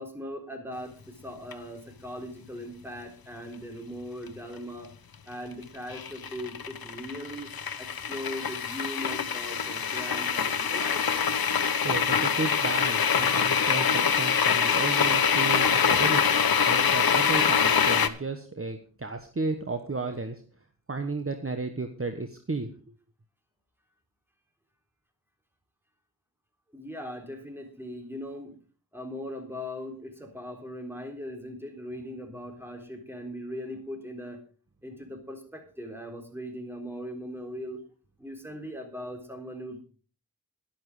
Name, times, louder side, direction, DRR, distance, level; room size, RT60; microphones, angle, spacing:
voice 1, 0.0-4.9 5.3-7.5 7.8-11.2 26.7-28.6 28.9-34.4 34.8-37.9 38.2-39.8, equal, 5° right, 4 dB, 3.8 m, -39 dB
sound 1, 1.5-1.6 5.9-18.1, left 6 dB, 75° left, 1.0 m, -24 dB
voice 2, 11.8-20.4 20.9-22.7, right 3 dB, 35° right, 7 dB, 1.3 m, -33 dB
12.0 x 11.5 x 4.9 m, 0.40 s
wide cardioid pair, 60°, 36 cm